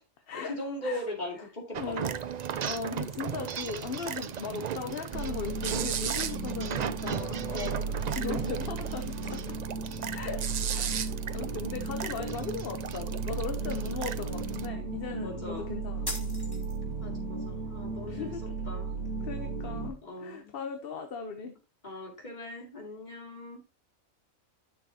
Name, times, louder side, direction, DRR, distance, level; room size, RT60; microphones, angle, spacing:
voice 1, 0.3-2.2 7.5-8.4 15.2-15.7 17.0-18.3 18.7-18.9 20.0-20.5 21.8-23.6, left 2 dB, 35° left, 0 dB, 2.7 m, -39 dB
sound 1, 1.7-14.7, right 8 dB, 90° right, 0.3 m, -36 dB
voice 2, 1.8-2.1 2.6-7.4 8.1-9.4 10.1-16.4 18.1-18.7 19.2-21.5, left 5 dB, 50° left, 6 dB, 1.0 m, -38 dB
sound 2, 5.1-19.9, right 4 dB, 40° right, 2.8 m, -35 dB
sound 3, 16.1-17.1, left 1 dB, 15° left, 1.7 m, -38 dB
10.0 x 6.6 x 2.8 m, 0.29 s
omnidirectional pair, 1.4 m